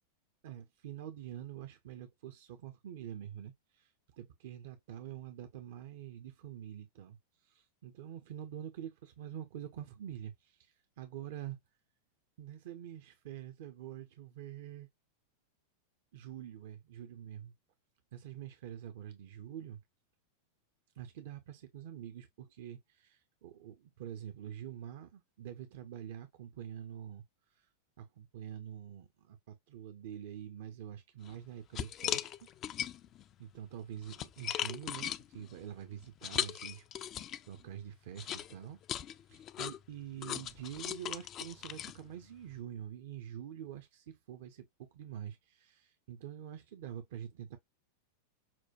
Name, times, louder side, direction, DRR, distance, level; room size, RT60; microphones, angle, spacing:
voice 1, 0.4-7.2 7.4-11.6 12.4-14.9 16.1-17.5 18.1-19.8 21.0-27.2 27.5-27.7 28.0-32.3 33.4-38.8 39.3-47.6, right 10 dB, 55° right, 0.6 m, -46 dB
sound 1, 31.2-31.4 31.7-33.2 33.8-37.6 38.2-42.6, left 10 dB, 30° left, 0.4 m, -39 dB
5.9 x 2.2 x 2.4 m
figure-of-eight pair, 90°, 0 cm